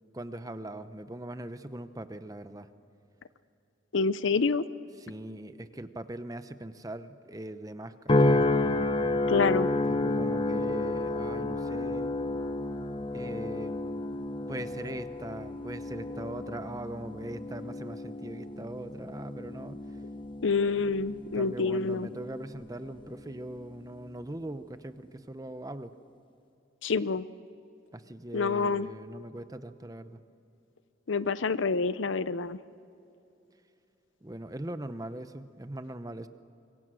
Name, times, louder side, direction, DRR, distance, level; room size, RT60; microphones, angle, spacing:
voice 1, 0.1-2.7 5.0-8.4 9.9-12.1 13.1-14.0 14.5-19.8 21.3-26.0 27.9-30.2 34.2-36.3, right 1 dB, 15° right, 11 dB, 0.7 m, -40 dB
voice 2, 3.9-4.6 9.3-9.7 20.4-22.1 26.8-27.3 28.3-28.9 31.1-32.6, left 4 dB, 70° left, 15 dB, 0.6 m, -27 dB
sound 1, 8.1-22.6 23.1-23.5, left 2 dB, 25° left, 0.8 m, -31 dB
26.0 x 23.5 x 6.3 m, 2.7 s
head